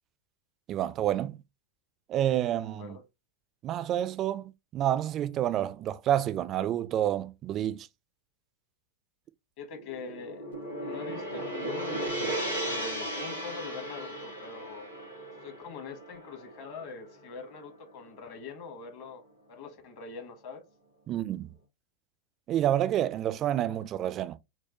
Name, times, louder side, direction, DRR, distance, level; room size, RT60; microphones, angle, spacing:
voice 1, 0.7-1.4 2.1-3.0 3.6-7.9 21.1-21.5 22.5-24.4, right 11 dB, 30° right, 0.3 m, -29 dB
voice 2, 9.6-10.5 10.8-14.9 15.4-19.2 19.5-20.6, left 5 dB, 45° left, 1.0 m, -43 dB
Gong, 9.7-18.1, right 1 dB, 90° left, 1.3 m, -36 dB
4.6 x 2.1 x 2.8 m
figure-of-eight pair, 90°, 0 cm